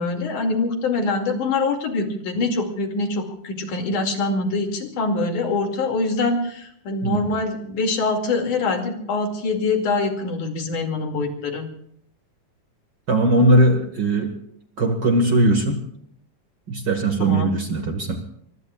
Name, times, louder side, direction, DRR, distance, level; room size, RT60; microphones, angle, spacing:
voice 1, 0.0-11.7 17.2-17.6, left 3 dB, 75° left, 3 dB, 3.8 m, -24 dB
voice 2, 13.1-14.3 14.8-15.8 16.7-18.2, right 1 dB, 45° right, 4 dB, 1.8 m, -19 dB
25.0 x 23.5 x 2.4 m, 0.69 s
omnidirectional pair, 3.6 m